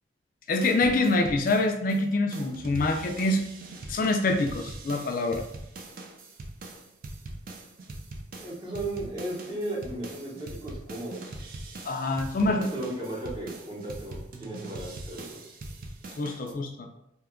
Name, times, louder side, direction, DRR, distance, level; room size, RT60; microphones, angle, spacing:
voice 1, 0.5-3.4 3.9-5.4 11.8-12.7 16.2-16.9, left 2 dB, 50° left, 3 dB, 0.3 m, -25 dB
sound 1, 0.6-2.0 2.3-16.5, right 2 dB, 50° right, 0.4 m, -42 dB
voice 2, 8.4-11.4 12.4-15.6, right 1 dB, 25° right, -4 dB, 0.8 m, -36 dB
2.8 x 2.2 x 3.6 m, 0.82 s
head